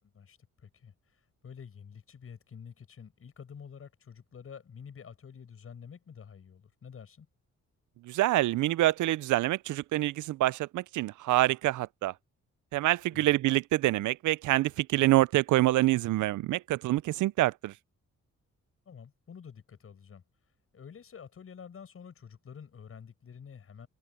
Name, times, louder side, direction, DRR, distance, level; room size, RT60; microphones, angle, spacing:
voice 1, 0.0-7.3 13.1-13.3 18.9-20.2 20.7-23.9, left 7 dB, 50° left, 7.4 m, -49 dB
voice 2, 8.0-12.1 12.7-17.7, right 16 dB, 80° right, 0.5 m, -26 dB
cardioid pair, 125°, 30 cm